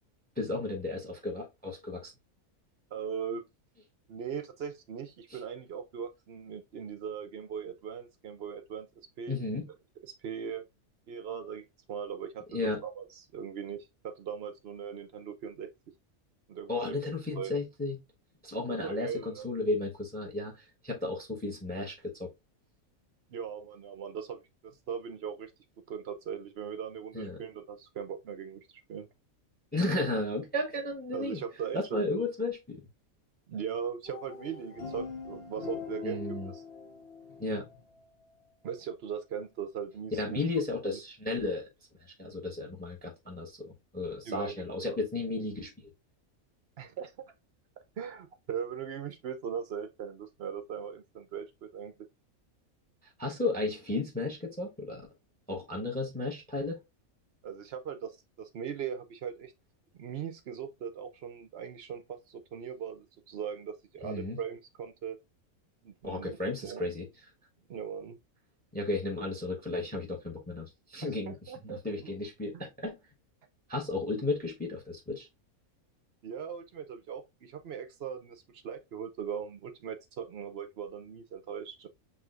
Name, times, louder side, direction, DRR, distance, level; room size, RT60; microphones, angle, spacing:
voice 1, 0.4-2.1 5.3-5.4 9.3-9.7 12.5-12.8 16.7-18.0 18.4-22.3 27.1-27.4 29.7-31.4 31.7-32.8 36.0-36.5 37.4-37.7 40.2-41.7 42.0-45.9 53.2-55.1 55.5-56.8 64.0-64.4 66.0-67.1 68.7-71.3 71.6-73.0 73.7-75.3, left 2 dB, 5° left, 0.9 m, -34 dB
voice 2, 2.9-3.4 4.1-8.9 9.2-9.5 10.0-10.6 11.1-15.7 16.5-17.0 17.3-17.5 18.7-19.5 23.3-25.5 25.9-29.1 31.1-32.2 33.5-36.6 38.6-40.6 44.2-44.6 44.9-45.0 46.8-47.3 48.0-51.9 57.4-59.5 59.9-65.2 65.8-66.9 67.7-68.2 71.0-72.1 76.2-81.9, right 7 dB, 60° right, 0.7 m, -39 dB
sound 1, 34.1-38.3, left 5 dB, 45° left, 1.5 m, -43 dB
6.2 x 3.0 x 2.4 m
omnidirectional pair, 1.5 m